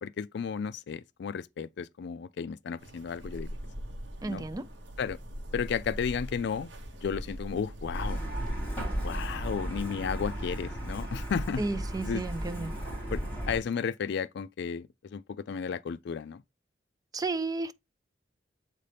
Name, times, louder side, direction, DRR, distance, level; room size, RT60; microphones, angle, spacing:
voice 1, 0.0-3.5 4.2-4.4 5.0-5.2 5.5-6.7 7.0-8.2 9.0-11.6 12.0-12.3 13.1-16.4, left 6 dB, 65° left, 0.4 m, -33 dB
sound 1, 2.8-8.5, equal, 75° right, 1.0 m, -41 dB
voice 2, 4.2-4.7 11.6-12.7 17.1-17.7, right 3 dB, 20° right, 0.4 m, -33 dB
Truck, 7.9-13.6, equal, 10° left, 2.8 m, -34 dB
7.4 x 4.2 x 3.4 m
head